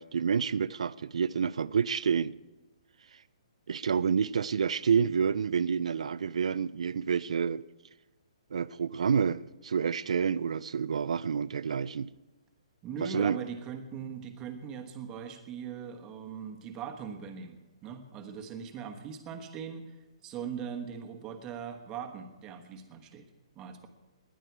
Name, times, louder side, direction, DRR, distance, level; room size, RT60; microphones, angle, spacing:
voice 1, 0.0-2.4 3.7-7.6 8.5-12.1 13.0-13.4, right 6 dB, 75° right, 0.5 m, -28 dB
voice 2, 12.8-23.3 23.5-23.9, right 7 dB, 15° right, 1.3 m, -40 dB
19.5 x 11.0 x 4.7 m
hypercardioid pair, 165°, 3 cm